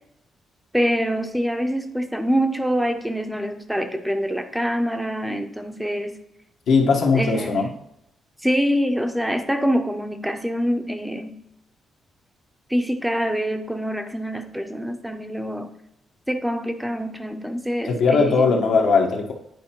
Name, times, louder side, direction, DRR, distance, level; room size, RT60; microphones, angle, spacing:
voice 1, 0.7-6.2 7.1-7.7 8.4-11.4 12.7-15.7 16.3-18.6, equal, 5° right, 6 dB, 0.5 m, -25 dB
voice 2, 6.7-7.7 17.8-19.3, left 4 dB, 75° left, 2 dB, 1.1 m, -19 dB
9.5 x 4.4 x 2.9 m, 0.80 s
cardioid pair, 130°, 0 cm